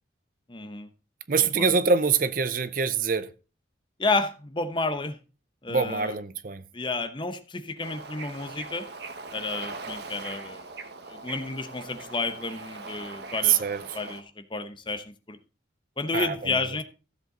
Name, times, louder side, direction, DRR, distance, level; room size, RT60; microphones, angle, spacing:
voice 1, 0.5-0.9 1.6-1.7 4.0-5.2 5.6-6.2 6.7-8.9 9.3-10.7 11.1-13.7 13.9-15.4 16.0-16.8, left 3 dB, 25° left, 0.9 m, -31 dB
voice 2, 1.3-3.3 5.7-6.6 13.5-13.8 16.1-16.3, right 5 dB, 45° right, 0.6 m, -24 dB
Bird / Ocean, 7.8-14.2, right 3 dB, 60° right, 1.2 m, -41 dB
14.5 x 7.7 x 3.8 m
head